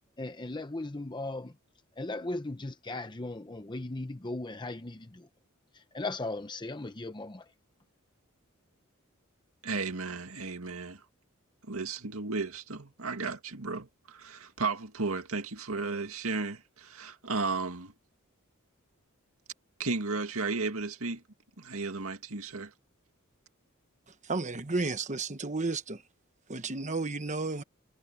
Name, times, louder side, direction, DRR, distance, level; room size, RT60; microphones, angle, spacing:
voice 1, 0.2-1.5 2.0-5.3 5.7-7.5, left 2 dB, 20° left, 0.8 m, -37 dB
voice 2, 9.6-11.0 11.6-17.9 19.8-21.2 21.6-22.7, right 3 dB, 90° right, 2.2 m, -34 dB
voice 3, 24.2-26.0 26.5-27.6, right 3 dB, 35° right, 1.2 m, -32 dB
head